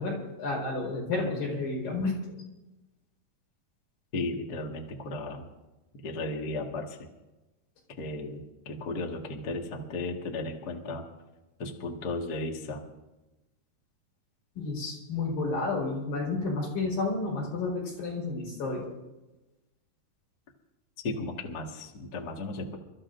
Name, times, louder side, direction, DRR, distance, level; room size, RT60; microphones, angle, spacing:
voice 1, 0.0-2.4 14.5-18.9, left 3 dB, 70° left, -3 dB, 6.4 m, -31 dB
voice 2, 4.1-5.5 6.0-7.0 8.0-11.0 11.6-12.8 21.0-22.8, left 2 dB, 40° left, 1 dB, 1.4 m, -35 dB
29.0 x 14.0 x 2.6 m, 1.1 s
omnidirectional pair, 4.3 m